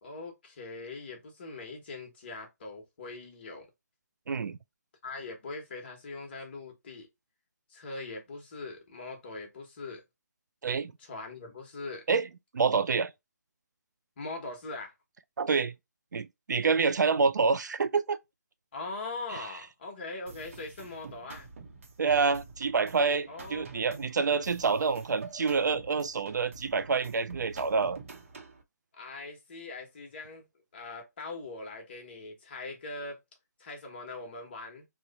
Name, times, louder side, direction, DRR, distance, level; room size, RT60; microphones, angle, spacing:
voice 1, 0.0-3.7 5.0-7.1 7.7-10.0 11.0-12.0 14.2-14.9 18.7-21.5 23.3-23.7 28.9-30.5 30.7-33.2 33.6-34.9, left 3 dB, 35° left, 1.1 m, -41 dB
voice 2, 4.3-4.6 10.6-10.9 12.1-12.3 12.5-13.1 15.4-15.7 16.1-18.2 22.0-28.0, right 5 dB, 80° right, 0.4 m, -27 dB
sound 1, 20.3-28.6, right 4 dB, 45° right, 0.8 m, -47 dB
3.1 x 2.2 x 3.9 m
hypercardioid pair, 170°, 10 cm